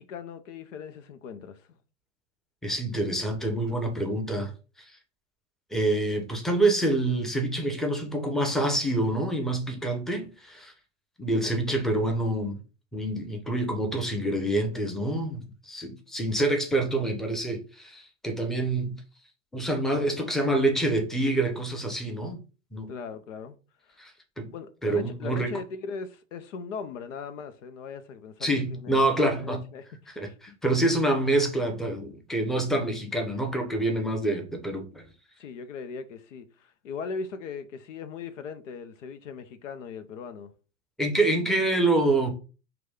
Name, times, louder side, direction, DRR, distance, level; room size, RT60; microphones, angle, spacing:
voice 1, 0.0-1.7 22.9-23.6 23.8-24.0 24.5-29.0 29.4-30.3 35.4-40.5, left 5 dB, 70° left, 0.7 m, -39 dB
voice 2, 2.6-4.5 4.8-4.9 5.7-10.7 11.2-12.6 12.9-18.9 19.5-22.4 22.7-22.9 24.0-24.5 24.8-25.5 28.4-29.6 30.2-35.0 41.0-42.3, right 2 dB, ahead, 0.8 m, -26 dB
4.9 x 2.3 x 3.6 m
hypercardioid pair, 100°, 39 cm